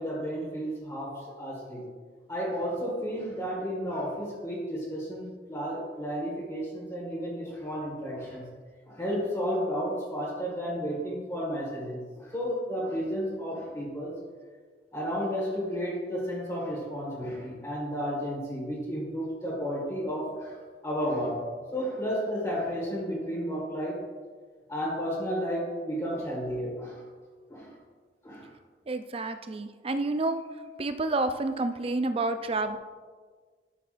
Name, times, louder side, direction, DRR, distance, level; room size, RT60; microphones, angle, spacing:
voice 1, 0.0-1.8 2.3-8.5 8.8-14.1 14.9-20.6 20.8-21.4 21.7-24.0 24.7-27.0 27.5-27.7 28.2-28.5, equal, 20° left, -6 dB, 1.6 m, -32 dB
voice 2, 28.9-30.4 30.8-32.8, right 2 dB, 35° right, 9 dB, 0.4 m, -29 dB
11.5 x 6.7 x 2.5 m, 1.5 s
head